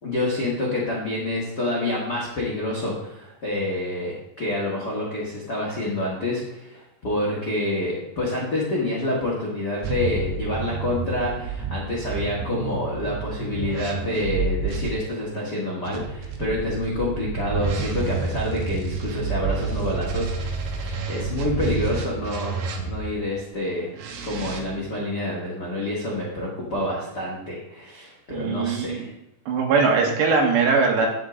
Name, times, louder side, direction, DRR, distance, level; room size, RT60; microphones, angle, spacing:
voice 1, 0.0-23.9 24.2-29.1, left 1 dB, 90° left, -4 dB, 0.9 m, -28 dB
sound 1, 9.8-14.9 15.8-23.2 23.9-24.6, right 4 dB, 70° right, 2.6 m, -29 dB
voice 2, 28.3-29.0 29.5-31.1, right 4 dB, 85° right, 1 dB, 3.7 m, -21 dB
9.4 x 8.4 x 3.9 m, 0.82 s
omnidirectional pair, 5.0 m